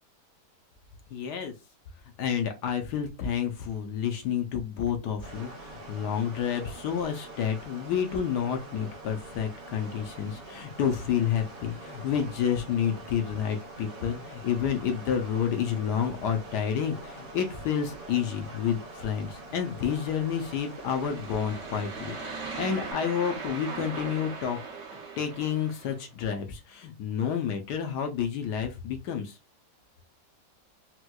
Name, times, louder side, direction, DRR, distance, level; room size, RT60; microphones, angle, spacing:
voice 1, 1.1-1.5 2.2-22.2 22.6-24.6 25.2-29.4, left 8 dB, 75° left, 4 dB, 1.1 m, -29 dB
sound 1, 5.2-22.9, right 2 dB, 75° right, 1.4 m, -44 dB
sound 2, 20.6-26.0, right 4 dB, 55° right, 1.0 m, -39 dB
4.3 x 2.2 x 2.2 m, 0.26 s
omnidirectional pair, 2.0 m